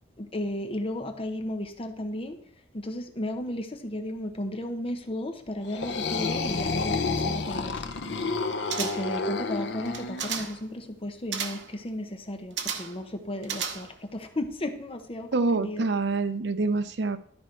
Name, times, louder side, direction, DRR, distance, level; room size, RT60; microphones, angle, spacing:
voice 1, 0.2-2.4 2.7-7.7 8.8-15.9, left 1 dB, 30° left, 6 dB, 0.9 m, -34 dB
sound 1, 5.6-10.4, left 3 dB, 70° left, 0.7 m, -30 dB
sound 2, 8.7-9.2 9.9-10.6 11.3-11.7 12.6-13.0 13.4-14.1 14.4-14.5, right 7 dB, 90° right, 0.9 m, -34 dB
voice 2, 15.3-17.2, right 3 dB, 65° right, 11 dB, 0.6 m, -26 dB
12.5 x 4.5 x 4.5 m, 0.62 s
head